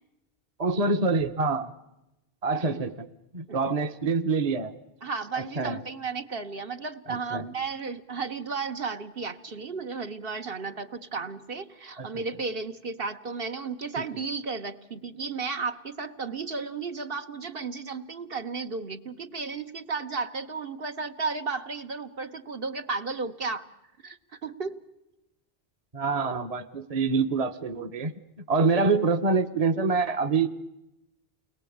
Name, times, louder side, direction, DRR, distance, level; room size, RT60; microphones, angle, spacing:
voice 1, 0.6-1.7 2.4-3.1 3.3-4.7 5.3-5.8 7.1-7.4 12.0-12.1 14.0-14.1 25.9-28.1 28.5-30.5, right 4 dB, 40° right, 9 dB, 1.1 m, -26 dB
voice 2, 5.0-23.7 24.0-24.8, right 4 dB, 65° right, 7 dB, 1.5 m, -34 dB
29.5 x 21.5 x 8.7 m, 0.93 s
omnidirectional pair, 1.1 m